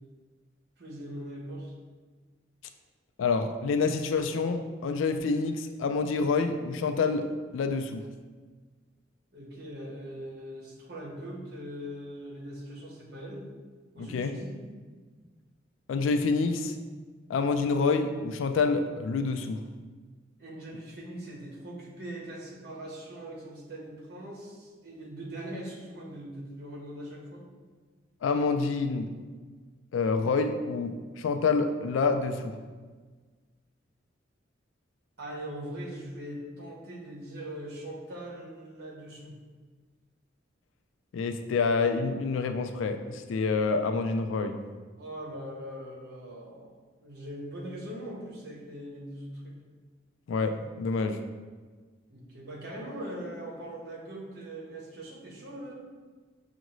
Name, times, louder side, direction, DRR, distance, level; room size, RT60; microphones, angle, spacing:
voice 1, 0.8-1.7 9.3-13.5 13.9-14.6 20.4-27.4 35.2-39.3 45.0-49.6 52.1-55.7, right 1 dB, 55° right, -3 dB, 1.1 m, -41 dB
voice 2, 3.2-7.2 7.5-8.0 14.0-14.3 15.9-16.7 17.3-19.6 28.2-29.1 29.9-32.5 41.1-44.6 50.3-51.2, left 4 dB, 90° left, 7 dB, 0.3 m, -27 dB
6.2 x 2.5 x 3.0 m, 1.4 s
head